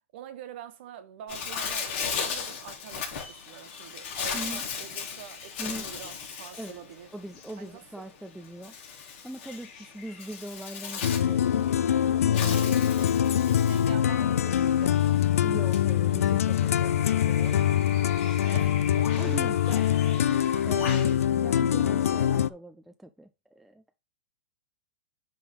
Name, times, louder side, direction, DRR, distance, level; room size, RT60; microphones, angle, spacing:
voice 1, 0.1-7.1 7.6-7.8 12.4-13.2 13.6-15.1 18.4-19.3 20.8-21.2, right 9 dB, 50° right, 1.4 m, -45 dB
Bird, 1.3-21.2, left 6 dB, 45° left, 3.0 m, -38 dB
voice 2, 4.3-4.6 5.6-5.9 6.5-6.8 7.1-8.8 9.2-11.6 12.3-12.7 15.4-17.7 19.2-19.9 20.6-23.8, right 1 dB, ahead, 0.4 m, -41 dB
sound 1, 11.0-22.5, left 10 dB, 85° left, 0.5 m, -24 dB
10.0 x 3.7 x 5.2 m
hypercardioid pair, 160°, 7 cm